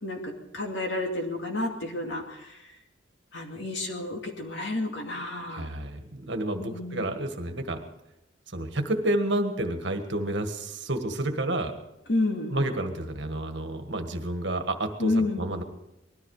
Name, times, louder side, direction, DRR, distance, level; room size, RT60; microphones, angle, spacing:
voice 1, 0.0-2.5 3.3-5.7 6.6-7.1 12.1-12.5 15.0-15.4, left 2 dB, 60° left, 2 dB, 2.5 m, -30 dB
voice 2, 5.5-7.8 8.5-11.7 12.5-15.6, right 1 dB, 60° right, 6 dB, 1.6 m, -30 dB
20.0 x 13.5 x 4.9 m, 0.91 s
head